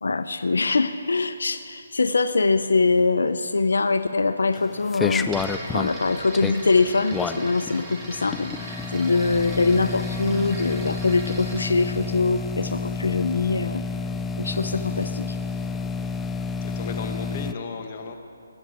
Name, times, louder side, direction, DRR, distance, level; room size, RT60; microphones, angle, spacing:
voice 1, 0.0-5.3 5.7-13.8 14.4-15.4, left 3 dB, 85° left, 10 dB, 0.6 m, -23 dB
sound 1, 4.5-17.5, left 4 dB, 5° left, 0.3 m, -30 dB
sound 2, 5.3-11.9, right 2 dB, 15° right, 1.4 m, -39 dB
voice 2, 16.6-18.1, left 5 dB, 35° left, 4 dB, 1.2 m, -35 dB
21.5 x 8.0 x 4.8 m, 2.6 s
hypercardioid pair, 165°, 0 cm